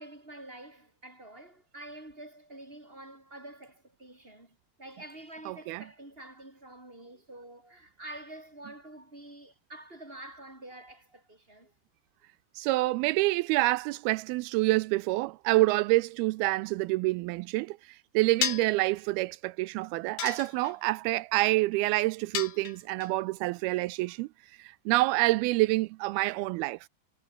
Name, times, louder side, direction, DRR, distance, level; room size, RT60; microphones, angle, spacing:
voice 1, 0.0-11.7, right 1 dB, 10° right, 6.4 m, -47 dB
voice 2, 5.5-5.8 12.6-17.8 18.1-24.3 24.6-26.8, right 20 dB, 85° right, 2.3 m, -27 dB
sound 1, 18.4-18.8 20.2-20.9 22.3-23.1, left 9 dB, 85° left, 5.0 m, -33 dB
omnidirectional pair, 4.8 m